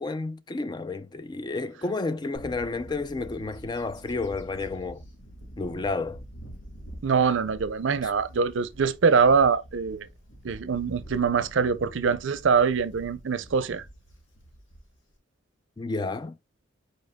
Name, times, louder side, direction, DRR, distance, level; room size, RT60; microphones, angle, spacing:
voice 1, 0.0-5.0 5.6-6.2 8.0-8.1 15.8-16.4, left 3 dB, 20° left, 0.3 m, -31 dB
Bird / Wind, 2.3-15.1, equal, 90° left, 1.7 m, -46 dB
voice 2, 7.0-10.1 10.4-13.9, right 5 dB, 75° right, 0.5 m, -23 dB
5.0 x 4.5 x 2.2 m
head